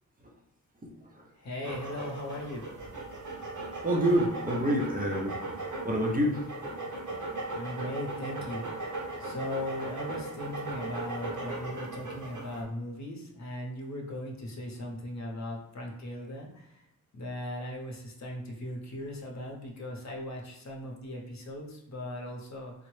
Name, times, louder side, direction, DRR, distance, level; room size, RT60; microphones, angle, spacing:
voice 1, 0.8-1.2 3.8-5.4 5.8-6.5, equal, 25° right, -2 dB, 0.5 m, -27 dB
voice 2, 1.4-2.6 7.5-8.6 9.2-16.7 17.1-22.7, left 1 dB, 55° left, 0 dB, 0.7 m, -38 dB
sound 1, 1.6-12.6, right 2 dB, 60° right, 0.8 m, -38 dB
3.7 x 2.0 x 3.1 m, 0.79 s
wide cardioid pair, 140°, 34 cm